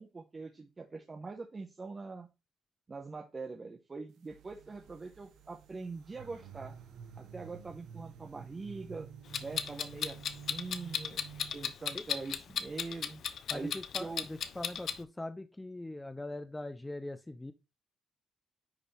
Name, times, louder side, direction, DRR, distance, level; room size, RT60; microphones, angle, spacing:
voice 1, 0.0-2.3 2.9-6.8 7.2-9.1 9.4-10.2 10.5-11.2 11.5-13.2 13.5-14.3, right 3 dB, 30° right, 1.1 m, -43 dB
sound 1, 4.3-11.7, right 7 dB, 80° right, 1.6 m, -50 dB
Clock, 9.3-15.0, left 8 dB, 65° left, 0.8 m, -35 dB
voice 2, 13.5-17.5, left 2 dB, 10° left, 0.6 m, -42 dB
9.9 x 4.0 x 3.4 m
cardioid pair, 90°, 0 cm